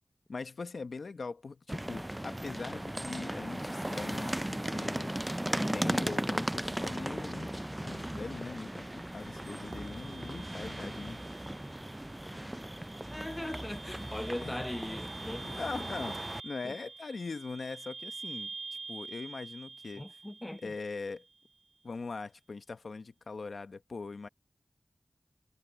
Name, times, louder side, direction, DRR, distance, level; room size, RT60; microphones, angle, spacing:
voice 1, 0.3-5.2 5.7-7.5 7.8-11.2 14.4-14.5 14.8-15.0 15.4-18.5 18.9-20.0 20.6-21.3 21.8-24.3, left 4 dB, 80° left, 1.0 m, -41 dB
sound 1, 1.7-16.4, right 1 dB, 15° right, 0.3 m, -37 dB
sound 2, 8.3-21.3, right 4 dB, 85° right, 1.4 m, -47 dB
voice 2, 13.1-15.6 16.6-16.7 20.0-20.7, left 1 dB, 20° left, 0.7 m, -40 dB
wide cardioid pair, 55°, 0 cm